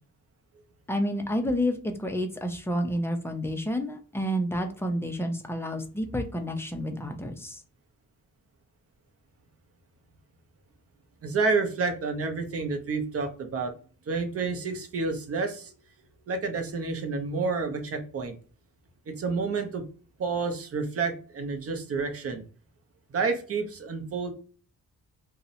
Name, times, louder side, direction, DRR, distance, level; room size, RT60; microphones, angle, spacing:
voice 1, 0.9-7.6, equal, 10° left, 5 dB, 0.4 m, -29 dB
voice 2, 11.2-13.7 14.1-15.7 16.3-18.3 19.1-19.9 20.2-22.4 23.1-24.3, right 4 dB, 45° right, 5 dB, 0.6 m, -29 dB
2.7 x 2.0 x 2.5 m, 0.40 s
wide cardioid pair, 120°, 32 cm